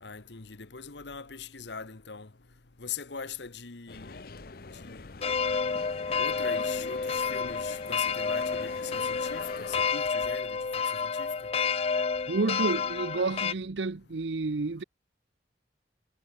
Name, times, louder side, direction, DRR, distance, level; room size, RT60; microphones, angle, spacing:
voice 1, 0.0-2.3 2.8-4.2 4.8-5.1 6.2-10.6 11.1-11.3, left 6 dB, 75° left, 1.3 m, -41 dB
sound 1, 3.9-9.9, left 4 dB, 55° left, 0.9 m, -44 dB
sound 2, 5.2-13.5, left 5 dB, 35° left, 0.4 m, -30 dB
voice 2, 12.3-14.8, right 3 dB, 80° right, 0.7 m, -30 dB
head